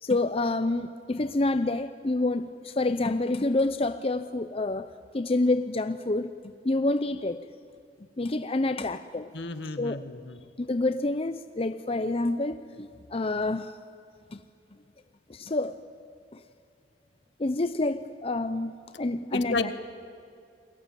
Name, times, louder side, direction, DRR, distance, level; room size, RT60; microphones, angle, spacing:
voice 1, 0.0-4.9 5.1-7.5 8.2-9.3 9.8-10.0 10.6-13.8 14.3-14.4 15.3-15.8 16.3-16.4 17.4-18.7 19.0-19.7, left 2 dB, 30° left, 10 dB, 0.6 m, -28 dB
voice 2, 9.3-10.4 19.3-19.7, left 3 dB, 65° left, 10 dB, 1.6 m, -32 dB
29.0 x 22.0 x 9.1 m, 2.5 s
head